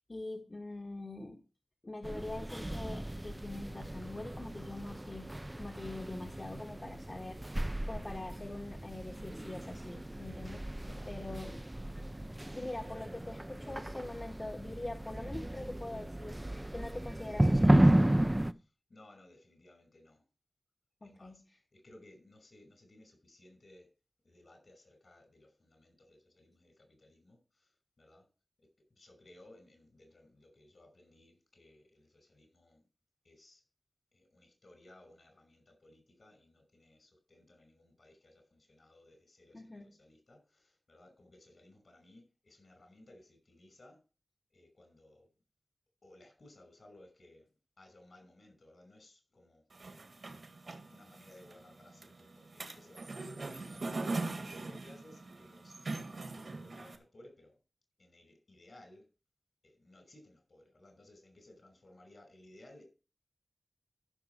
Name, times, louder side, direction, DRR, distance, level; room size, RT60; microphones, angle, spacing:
voice 1, 0.1-1.4 1.8-11.6 12.5-18.1 21.0-21.6 39.5-39.9, left 2 dB, 40° left, 1.6 m, -44 dB
sound 1, 2.0-18.5, right 1 dB, 20° right, 0.6 m, -33 dB
voice 2, 10.8-11.8 18.9-20.2 21.0-21.4 21.7-23.9 24.2-27.7 28.0-28.2 28.6-28.7 29.0-32.8 33.2-33.6 34.1-44.0 44.5-45.3 46.0-47.5 47.8-50.4 50.7-57.6 58.0-59.0 59.6-62.8, left 1 dB, 65° left, 5.8 m, -60 dB
sound 2, 49.7-57.0, right 3 dB, 75° right, 2.0 m, -41 dB
14.5 x 6.3 x 4.7 m
wide cardioid pair, 50°, 0 cm